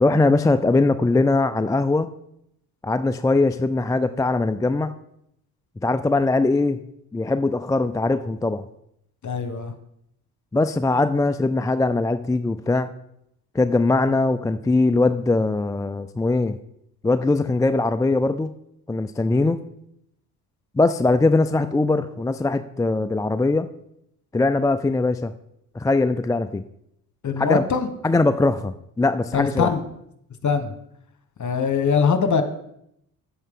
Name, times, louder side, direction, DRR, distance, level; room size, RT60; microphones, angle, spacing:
voice 1, 0.0-2.1 2.8-4.9 5.8-6.8 7.1-8.6 10.5-12.9 13.5-16.6 17.0-18.5 18.9-19.6 20.8-23.7 24.3-25.3 25.7-26.6 27.4-27.6 28.0-29.7, left 3 dB, 10° left, 10 dB, 0.3 m, -21 dB
voice 2, 9.2-9.7 27.2-27.9 29.3-29.8 30.4-30.7 31.4-32.4, left 6 dB, 40° left, 8 dB, 1.3 m, -22 dB
8.7 x 8.0 x 3.7 m, 0.76 s
hypercardioid pair, 55°, 44 cm